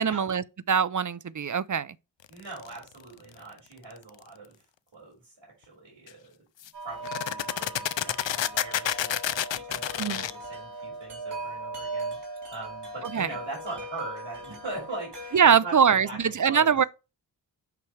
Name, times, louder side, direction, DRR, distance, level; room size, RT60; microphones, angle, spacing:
voice 1, 0.0-1.9 10.0-10.2 13.1-13.3 15.3-16.8, right 7 dB, 45° right, 0.5 m, -23 dB
voice 2, 2.3-4.5 4.9-6.4 6.8-9.2 9.5-12.2 12.5-16.2 16.4-16.8, right 2 dB, 80° right, 5.3 m, -41 dB
sound 1, 2.6-2.9 6.1-6.2 6.6-6.7 7.0-10.3, left 10 dB, 80° left, 0.5 m, -29 dB
Wind chime, 6.7-15.4, right 2 dB, 65° right, 3.7 m, -39 dB
8.5 x 6.1 x 3.2 m
wide cardioid pair, 60°, 44 cm